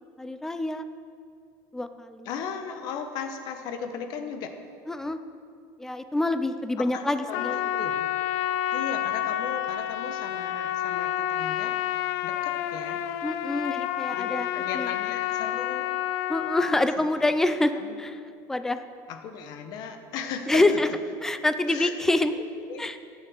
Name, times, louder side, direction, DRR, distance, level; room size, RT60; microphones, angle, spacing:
voice 1, 0.2-0.8 1.7-2.3 4.9-5.2 5.8-7.6 13.2-14.5 14.7-14.9 16.3-17.7 18.0-18.2 18.5-18.8 20.5-20.9 21.2-22.3 22.8-23.0, left 2 dB, 5° left, 10 dB, 0.5 m, -26 dB
voice 2, 2.2-4.5 6.8-8.1 8.7-11.7 12.2-13.0 14.1-15.9 17.1-17.2 17.7-18.0 19.1-20.9 21.7-21.9 22.3-22.8, left 6 dB, 50° left, 6 dB, 1.2 m, -36 dB
Trumpet, 7.3-16.8, left 12 dB, 90° left, 0.6 m, -29 dB
13.5 x 9.8 x 6.5 m, 2.3 s
cardioid pair, 175°, 9 cm